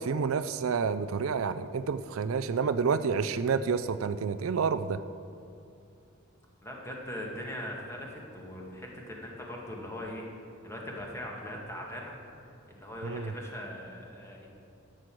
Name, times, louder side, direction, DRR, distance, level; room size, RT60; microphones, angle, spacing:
voice 1, 0.0-5.0 13.0-13.3, right 5 dB, 65° right, 12 dB, 0.4 m, -29 dB
voice 2, 6.6-10.2 10.6-12.2 12.7-14.5, left 1 dB, 15° left, -2 dB, 1.9 m, -40 dB
13.0 x 7.7 x 6.2 m, 2.5 s
head